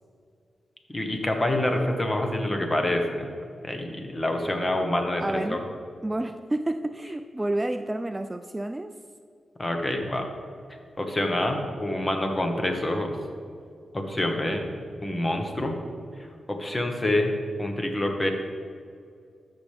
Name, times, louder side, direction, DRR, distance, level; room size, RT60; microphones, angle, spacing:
voice 1, 0.9-3.3 3.6-5.6 9.6-10.3 11.0-13.2 13.9-14.7 15.0-15.8 16.5-17.3 17.6-18.3, left 1 dB, 25° left, 4 dB, 1.3 m, -26 dB
voice 2, 5.2-5.6 6.0-8.9, right 1 dB, 20° right, 8 dB, 0.3 m, -30 dB
13.0 x 6.1 x 3.4 m, 2.3 s
cardioid pair, 80°, 0 cm